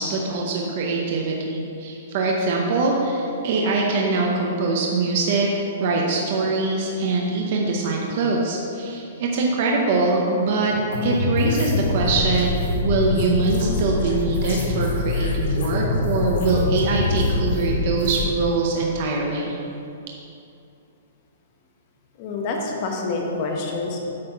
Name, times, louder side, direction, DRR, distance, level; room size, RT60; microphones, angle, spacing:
voice 1, 0.0-5.5 5.8-10.7 11.0-12.6 12.8-19.6, right 3 dB, 35° right, -1 dB, 0.7 m, -23 dB
sound 1, 10.9-18.3, left 3 dB, 50° left, 1.3 m, -24 dB
voice 2, 22.2-24.0, left 3 dB, 30° left, 1 dB, 0.8 m, -27 dB
8.6 x 4.1 x 5.5 m, 2.6 s
hypercardioid pair, 180°, 0 cm